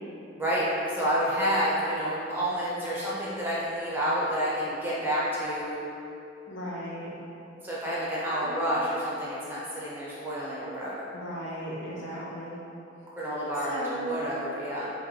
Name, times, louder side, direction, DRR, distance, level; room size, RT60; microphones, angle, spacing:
voice 1, 0.4-5.8 7.6-11.1 12.1-12.3 13.2-14.9, equal, 10° right, -8 dB, 0.4 m, -29 dB
voice 2, 6.5-7.1 8.2-8.6 11.1-12.6 13.6-14.0, equal, 70° left, -6 dB, 0.7 m, -37 dB
3.1 x 2.1 x 3.4 m, 2.8 s
head